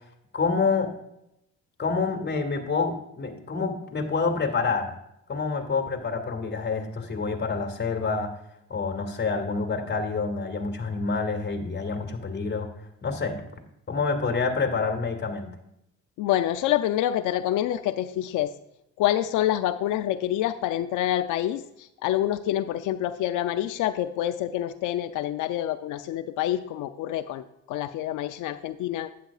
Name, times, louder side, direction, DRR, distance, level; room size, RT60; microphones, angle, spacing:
voice 1, 0.3-0.9 1.8-4.9 5.3-8.4 8.7-12.7 13.0-13.4 13.9-15.5, left 4 dB, 35° left, 5 dB, 2.0 m, -27 dB
voice 2, 16.2-18.5 19.0-29.1, left 12 dB, 90° left, 8 dB, 0.5 m, -27 dB
11.5 x 9.4 x 2.4 m, 0.83 s
cardioid pair, 90°, 30 cm